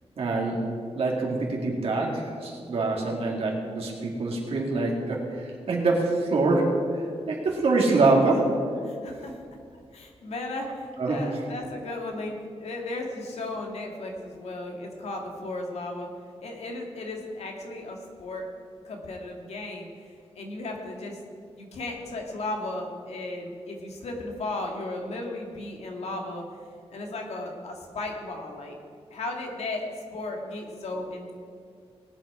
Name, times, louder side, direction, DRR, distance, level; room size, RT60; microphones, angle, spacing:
voice 1, 0.2-0.7 1.0-8.6 11.0-11.2, right 3 dB, 65° right, -2 dB, 2.1 m, -25 dB
voice 2, 8.8-9.3 9.9-16.1 16.4-18.5 18.8-21.2 21.6-26.4 26.9-28.8 29.1-29.8 30.1-31.3, left 2 dB, 80° left, 1 dB, 2.1 m, -35 dB
19.0 x 8.8 x 4.9 m, 2.2 s
wide cardioid pair, 170°, 11 cm